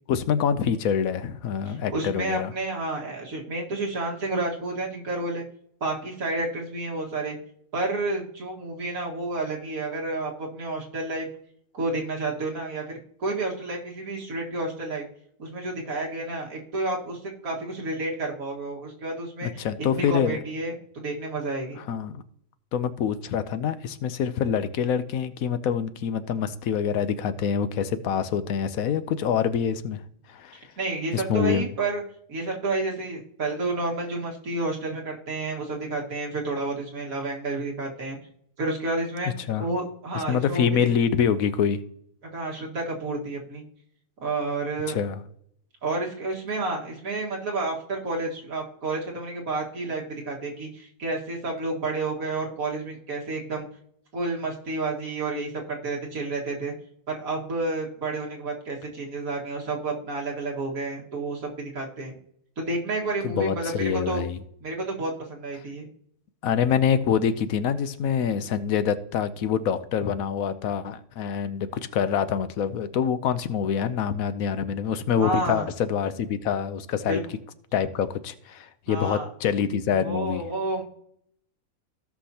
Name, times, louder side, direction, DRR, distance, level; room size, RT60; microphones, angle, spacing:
voice 1, 0.1-2.5 19.4-20.4 21.7-22.2 22.7-30.0 30.3-30.5 31.1-31.6 39.5-39.6 40.3-41.8 44.9-45.2 63.2-64.4 66.4-77.2 77.7-80.4, left 8 dB, 85° left, 1.2 m, -26 dB
voice 2, 1.7-5.4 5.8-7.4 7.7-11.3 11.7-15.1 15.4-19.6 19.9-21.8 30.8-32.0 32.3-38.2 38.6-39.3 39.6-40.8 42.2-43.6 44.2-45.0 45.8-53.7 54.1-56.7 57.1-62.1 62.6-64.2 64.6-65.9 75.2-75.7 77.1-77.2 78.9-79.3 79.9-80.8, right 2 dB, 85° right, 2.2 m, -30 dB
16.5 x 5.8 x 2.8 m
omnidirectional pair, 1.4 m